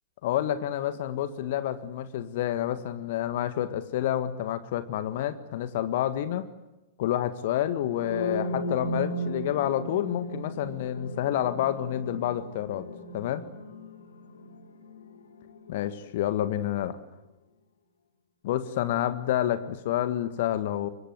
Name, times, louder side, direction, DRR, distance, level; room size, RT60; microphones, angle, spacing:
voice 1, 0.2-6.5 7.0-12.9 13.1-13.4 15.7-17.0 18.4-20.9, left 11 dB, 50° left, 12 dB, 1.7 m, -29 dB
sound 1, 7.9-15.7, equal, 70° left, 4.0 m, -36 dB
25.5 x 23.5 x 9.2 m, 1.0 s
figure-of-eight pair, 100°, 0 cm